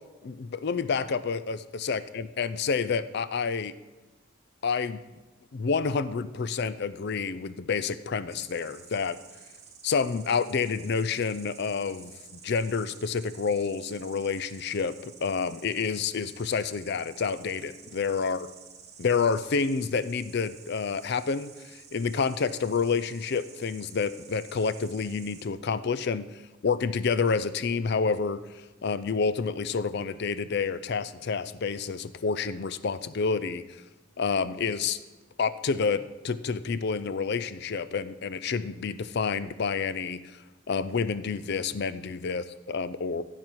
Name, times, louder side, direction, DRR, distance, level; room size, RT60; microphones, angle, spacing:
voice 1, 0.2-3.7 4.6-5.0 5.5-9.2 9.8-12.1 12.4-18.5 19.0-26.3 26.6-33.6 34.2-35.0 35.4-40.2 40.7-43.2, left 5 dB, 55° left, 15 dB, 0.4 m, -29 dB
Insect, 8.3-25.5, right 6 dB, 30° right, 1.0 m, -51 dB
15.5 x 5.7 x 4.6 m, 1.1 s
head